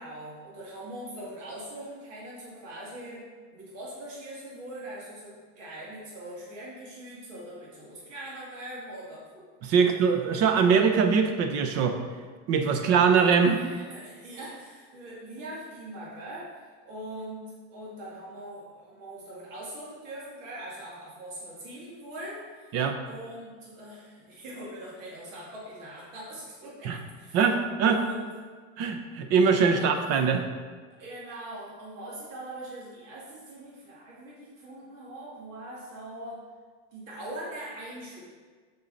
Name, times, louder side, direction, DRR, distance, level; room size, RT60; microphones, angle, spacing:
voice 1, 0.0-3.3 3.5-9.9 13.4-22.8 23.0-27.4 27.8-28.3 29.7-29.9 31.0-36.4 36.9-38.2, right 1 dB, 85° right, -6 dB, 2.3 m, -42 dB
voice 2, 9.6-12.0 12.5-13.6 22.7-23.0 26.8-27.0 27.3-28.0 28.8-30.4, right 6 dB, 45° right, 7 dB, 0.8 m, -22 dB
7.2 x 5.6 x 4.0 m, 1.5 s
supercardioid pair, 155°, 37 cm